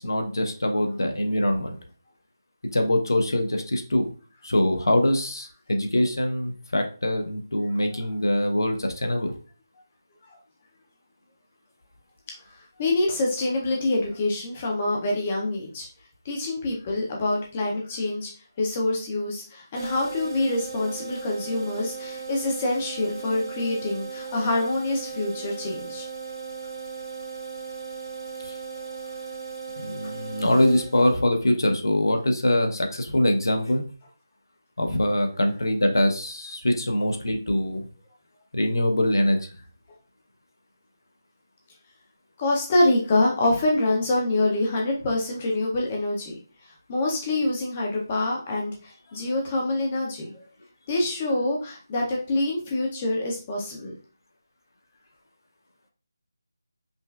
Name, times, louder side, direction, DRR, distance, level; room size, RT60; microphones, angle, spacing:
voice 1, 0.0-1.8 2.7-4.1 4.4-9.3 28.4-28.6 29.8-33.8 34.8-37.9 38.5-39.4, left 1 dB, 75° left, 4 dB, 0.8 m, -23 dB
voice 2, 12.8-15.9 16.3-18.3 18.6-26.1 28.8-28.9 42.4-46.4 46.9-50.4 50.9-53.9, left 2 dB, 10° left, -1 dB, 0.5 m, -26 dB
sound 1, 19.8-31.5, right 5 dB, 80° right, 1.1 m, -37 dB
5.2 x 2.3 x 2.3 m, 0.38 s
figure-of-eight pair, 180°, 2 cm